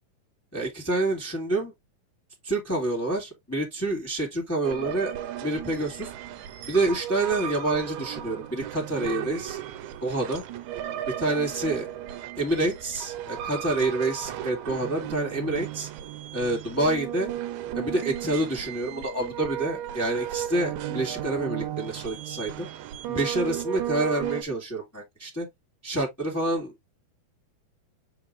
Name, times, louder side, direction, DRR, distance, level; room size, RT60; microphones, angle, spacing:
voice 1, 0.5-1.7 2.4-5.1 5.4-6.1 6.7-9.6 10.0-10.4 11.2-11.9 12.4-15.9 16.3-17.3 17.7-22.7 23.1-25.5 25.8-26.7, right 2 dB, 5° left, 2.0 m, -27 dB
sound 1, 4.6-24.4, right 11 dB, 75° right, 2.1 m, -35 dB
7.6 x 4.9 x 2.6 m
omnidirectional pair, 3.6 m